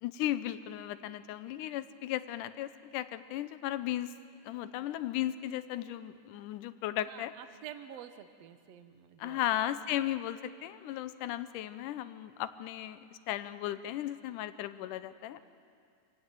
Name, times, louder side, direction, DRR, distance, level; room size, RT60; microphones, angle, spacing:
voice 1, 0.0-4.2 4.4-7.3 9.2-13.0 13.3-15.4, left 13 dB, 80° left, 13 dB, 2.2 m, -36 dB
voice 2, 7.1-9.4, right 10 dB, 65° right, 10 dB, 1.8 m, -48 dB
26.0 x 16.5 x 9.2 m, 2.3 s
omnidirectional pair, 3.8 m